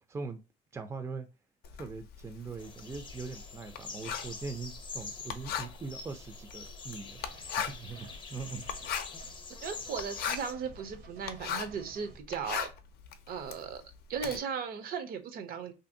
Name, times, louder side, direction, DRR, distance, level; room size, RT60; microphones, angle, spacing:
voice 1, 0.1-0.4 0.7-1.3 1.8-7.2 7.5-8.6 9.0-9.1, right 4 dB, 15° right, 0.4 m, -41 dB
Writing, 1.6-11.8 12.2-14.4, left 8 dB, 65° left, 0.5 m, -38 dB
sound 1, 2.6-10.5, left 4 dB, 30° left, 0.6 m, -46 dB
sound 2, 7.2-7.6 7.9-9.5 9.7-9.9 10.2-12.3, right 3 dB, 85° right, 1.2 m, -54 dB
voice 2, 9.6-12.7 13.3-15.7, right 7 dB, 60° right, 0.6 m, -37 dB
2.7 x 2.6 x 2.6 m
cardioid pair, 110°, 17 cm